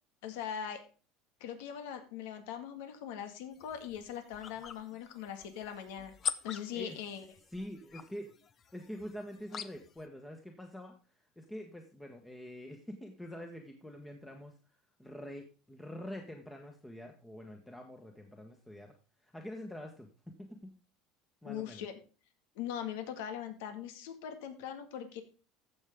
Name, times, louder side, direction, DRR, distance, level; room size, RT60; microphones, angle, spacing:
voice 1, 0.2-0.8 1.4-6.1 6.4-7.2 21.4-21.9 22.6-25.2, left 9 dB, 85° left, 8 dB, 1.9 m, -41 dB
sound 1, 3.5-10.1, left 7 dB, 35° left, 0.8 m, -44 dB
voice 2, 7.5-8.3 8.7-10.9 11.4-14.5 15.0-18.9 19.2-20.7 21.4-21.9, equal, 5° left, 3 dB, 1.3 m, -45 dB
15.0 x 6.4 x 3.6 m, 0.36 s
supercardioid pair, 135°, 0 cm